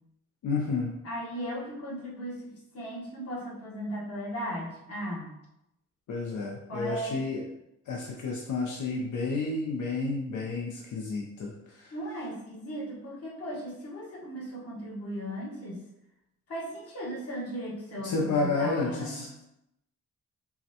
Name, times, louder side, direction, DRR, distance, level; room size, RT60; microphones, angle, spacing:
voice 1, 0.4-0.9 6.1-7.5 7.9-11.9 18.0-19.4, left 3 dB, 80° left, -2 dB, 0.6 m, -31 dB
voice 2, 1.0-5.3 6.7-7.2 11.9-15.8 16.5-19.2, equal, 55° left, -4 dB, 1.2 m, -37 dB
5.5 x 2.2 x 2.8 m, 0.85 s
wide cardioid pair, 125°, 29 cm